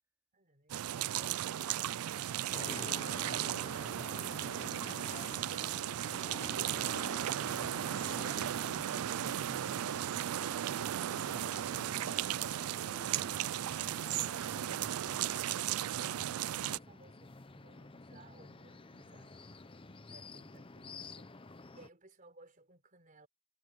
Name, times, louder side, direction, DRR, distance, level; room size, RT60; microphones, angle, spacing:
sound 1, 0.7-16.8, right 11 dB, 85° right, 0.4 m, -36 dB
sound 2, 2.5-21.9, left 3 dB, 25° left, 0.8 m, -50 dB
voice 1, 15.9-19.4 20.1-23.3, right 2 dB, 40° right, 3.9 m, -62 dB
voice 2, 20.0-20.5 21.6-21.8, equal, 10° right, 2.6 m, -61 dB
head